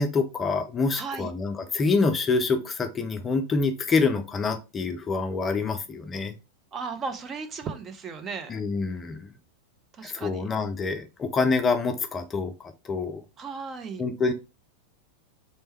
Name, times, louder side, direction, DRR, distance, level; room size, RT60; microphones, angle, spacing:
voice 1, 0.0-6.3 8.5-9.3 10.0-12.5 12.8-13.2 14.0-14.3, left 4 dB, 20° left, 0.5 m, -26 dB
voice 2, 0.9-1.3 6.7-8.5 10.0-10.5 13.4-14.0, right 5 dB, 25° right, 0.7 m, -35 dB
3.3 x 3.1 x 4.3 m
figure-of-eight pair, 90°, 0 cm